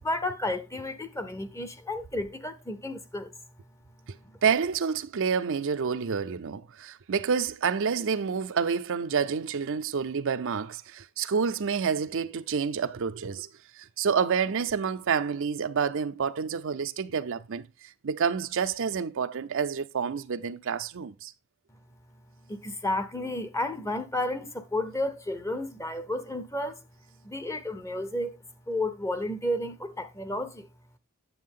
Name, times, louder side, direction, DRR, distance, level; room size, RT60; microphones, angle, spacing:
voice 1, 0.0-3.3 22.5-26.8 27.2-28.3 28.7-30.7, left 1 dB, 15° left, 0.7 m, -32 dB
voice 2, 4.4-13.5 13.8-17.7 18.0-21.3, right 6 dB, 60° right, 0.5 m, -28 dB
9.4 x 7.1 x 3.6 m
head